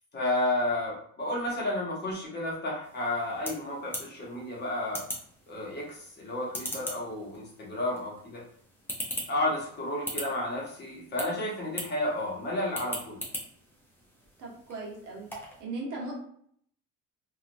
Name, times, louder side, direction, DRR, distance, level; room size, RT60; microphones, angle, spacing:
voice 1, 0.1-5.0 5.5-8.4 9.3-13.2, left 1 dB, 30° left, -3 dB, 0.9 m, -32 dB
sound 1, 2.8-15.6, equal, 5° left, 0.5 m, -42 dB
voice 2, 14.4-15.3 15.6-16.1, right 2 dB, 70° right, -2 dB, 1.0 m, -37 dB
2.9 x 2.4 x 2.6 m, 0.64 s
cardioid pair, 150°, 33 cm